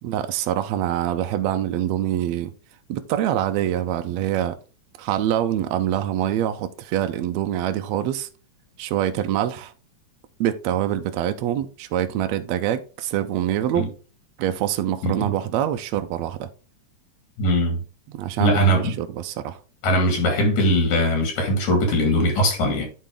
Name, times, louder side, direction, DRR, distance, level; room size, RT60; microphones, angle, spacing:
voice 1, 0.0-2.5 2.9-4.6 5.0-8.3 8.8-9.7 10.4-13.9 14.4-16.5 18.1-19.6, right 11 dB, 80° right, 1.8 m, -25 dB
voice 2, 17.4-17.8 18.4-18.9 19.8-22.8, equal, 80° left, 3.6 m, -20 dB
10.5 x 4.3 x 3.7 m
omnidirectional pair, 3.3 m